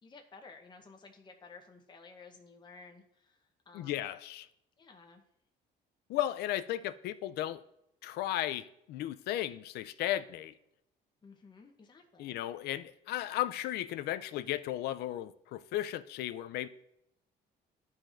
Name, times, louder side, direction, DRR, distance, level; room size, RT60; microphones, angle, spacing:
voice 1, 0.0-4.1 4.8-5.2 11.2-12.4, left 4 dB, 25° left, 0.8 m, -54 dB
voice 2, 3.7-4.5 6.1-7.6 8.0-10.5 12.2-16.7, left 13 dB, 75° left, 0.4 m, -35 dB
12.5 x 4.9 x 2.5 m
cardioid pair, 110°, 17 cm